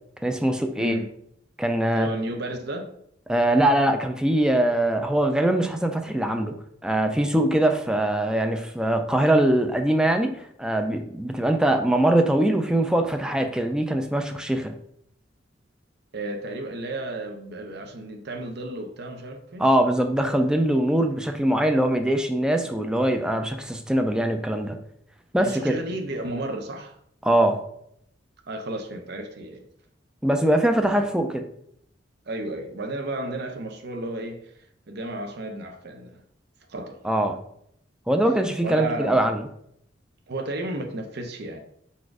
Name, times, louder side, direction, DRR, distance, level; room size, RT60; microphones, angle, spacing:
voice 1, 0.2-1.0 1.6-2.1 3.3-6.5 6.8-14.7 19.6-24.8 25.3-25.7 27.2-27.6 30.2-31.4 37.0-37.4 38.1-39.4, right 1 dB, 5° right, 0.4 m, -22 dB
voice 2, 0.8-1.1 1.9-2.9 16.1-19.6 25.4-27.0 28.5-29.7 32.3-34.5 34.9-36.2 36.7-37.0 38.6-39.3 40.3-41.6, right 1 dB, 60° right, 0.7 m, -33 dB
4.1 x 2.5 x 4.7 m
head